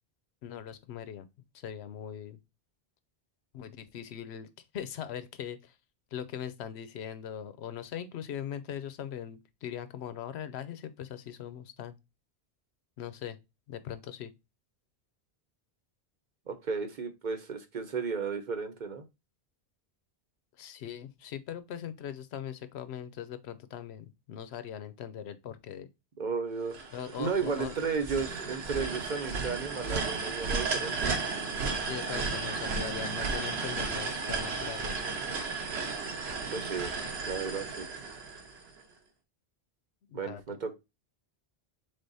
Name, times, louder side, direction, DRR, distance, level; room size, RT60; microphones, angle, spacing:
voice 1, 0.4-1.3 1.5-2.4 3.5-5.8 6.1-12.0 13.0-13.4 13.7-14.3 20.6-25.9 26.9-27.7 31.7-35.0 40.1-40.6, left 9 dB, 90° left, 0.9 m, -40 dB
voice 2, 16.5-19.0 26.2-26.8 27.2-31.2 36.5-37.9 40.1-40.7, right 5 dB, 50° right, 0.9 m, -34 dB
sound 1, 26.7-38.8, right 4 dB, 85° right, 1.2 m, -34 dB
3.6 x 3.4 x 3.9 m
omnidirectional pair, 1.1 m